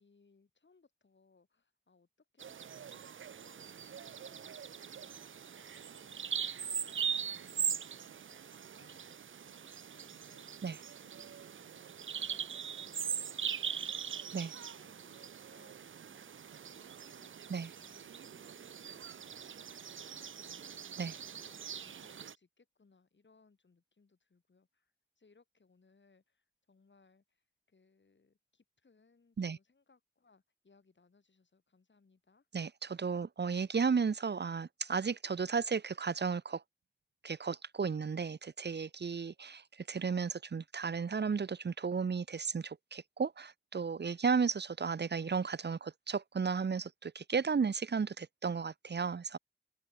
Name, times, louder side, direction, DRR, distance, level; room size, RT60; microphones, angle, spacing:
voice 1, 0.0-10.7 11.0-14.4 14.7-21.0 21.4-32.5, left 4 dB, 70° left, 6.3 m, -68 dB
Bird vocalization bird call bird song, 2.4-22.3, right 7 dB, 90° right, 0.5 m, -41 dB
voice 2, 32.5-36.6 37.2-49.4, right 5 dB, 60° right, 0.8 m, -34 dB
open air
wide cardioid pair, 75°, 20 cm